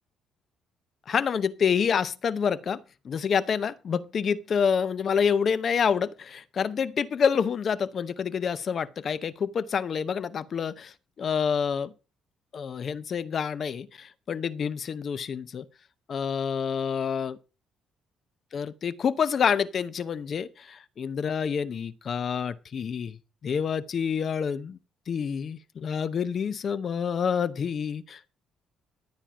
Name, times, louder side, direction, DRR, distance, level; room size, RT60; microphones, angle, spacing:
voice 1, 1.1-11.9 12.5-15.7 16.1-17.3 18.5-24.8 25.1-28.4, left 7 dB, 45° left, 0.8 m, -28 dB
13.0 x 9.1 x 5.0 m
cardioid pair, 130°, 0 cm